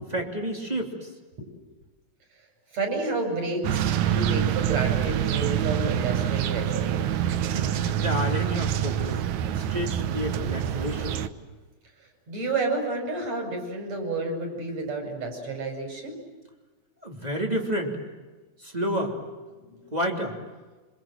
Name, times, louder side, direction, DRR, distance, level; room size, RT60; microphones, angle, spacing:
voice 1, 0.1-1.1 7.5-9.2 9.5-11.2 17.0-18.0 18.6-19.1 19.9-20.4, equal, 10° right, 2 dB, 2.9 m, -30 dB
voice 2, 2.7-6.9 12.3-16.2 19.6-19.9, right 3 dB, 45° right, 3 dB, 6.9 m, -30 dB
sound 1, 3.6-11.3, right 10 dB, 70° right, 2.0 m, -26 dB
26.5 x 26.5 x 7.7 m, 1.3 s
omnidirectional pair, 4.1 m